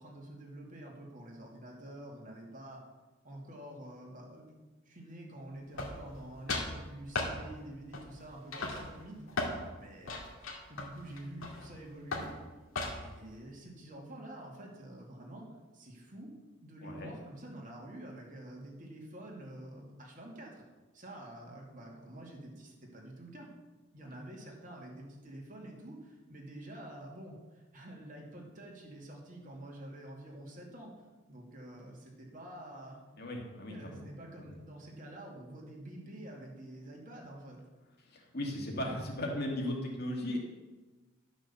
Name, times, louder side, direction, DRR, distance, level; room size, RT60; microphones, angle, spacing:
voice 1, 0.0-2.8 3.2-4.5 4.9-9.4 9.7-10.2 10.7-12.4 12.7-15.5 15.7-16.3 16.6-20.6 20.9-23.5 23.9-30.9 31.3-33.0 33.7-37.6, right 1 dB, 40° right, -1 dB, 2.3 m, -48 dB
sound 1, 5.8-6.2 6.5-6.7 7.1-7.3 7.9-8.2 8.5-9.6 10.1-11.7 12.1-12.3 12.7-13.2, left 3 dB, 80° left, 2.3 m, -36 dB
voice 2, 16.8-17.1 33.2-34.0 34.4-34.6 38.0-40.4, left 1 dB, 50° left, 0 dB, 2.4 m, -37 dB
12.0 x 6.3 x 6.9 m, 1.2 s
head